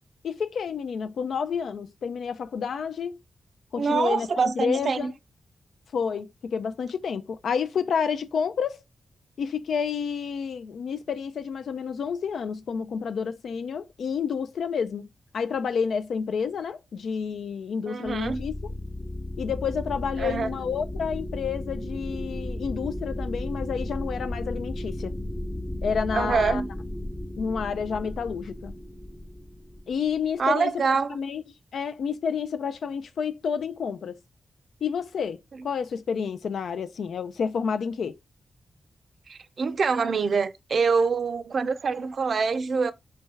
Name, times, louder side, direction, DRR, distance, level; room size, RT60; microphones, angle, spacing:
voice 1, 0.2-3.2 3.7-4.3 4.6-5.1 5.9-8.8 9.4-15.1 15.3-18.5 19.4-25.1 25.8-26.6 27.4-28.7 29.9-30.7 31.1-31.4 31.7-34.2 34.8-38.2, left 6 dB, 85° left, 0.4 m, -29 dB
voice 2, 3.8-5.1 17.9-18.4 20.2-20.6 26.1-26.7 30.4-31.2 35.5-35.7 39.3-42.9, right 5 dB, 50° right, 0.4 m, -25 dB
sound 1, 18.0-30.3, left 1 dB, 10° left, 0.4 m, -34 dB
3.4 x 3.1 x 4.5 m
wide cardioid pair, 165°, 0 cm